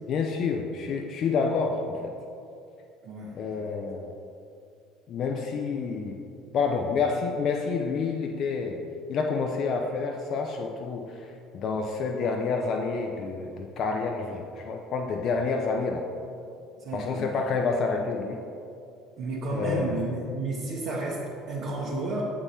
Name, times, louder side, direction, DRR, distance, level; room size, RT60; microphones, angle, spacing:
voice 1, 0.1-2.1 3.4-4.1 5.1-6.2 6.5-8.8 9.1-11.3 11.5-16.0 16.9-18.4 19.5-20.0, left 4 dB, 50° left, 2 dB, 0.5 m, -28 dB
voice 2, 3.0-3.7 16.8-17.4 19.2-22.2, right 2 dB, 55° right, -6 dB, 1.0 m, -32 dB
7.8 x 3.7 x 4.1 m, 2.5 s
hypercardioid pair, 60°, 0 cm